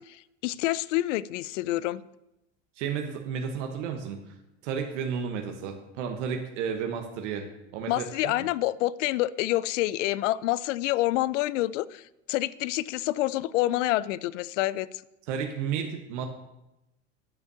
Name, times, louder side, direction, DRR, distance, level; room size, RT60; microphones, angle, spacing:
voice 1, 0.0-2.0 7.9-14.9, left 16 dB, 90° left, 0.5 m, -27 dB
voice 2, 2.8-4.3 4.6-7.5 7.7-8.3 15.3-16.3, right 7 dB, 80° right, 1.2 m, -32 dB
9.7 x 5.5 x 6.8 m
supercardioid pair, 130°, 36 cm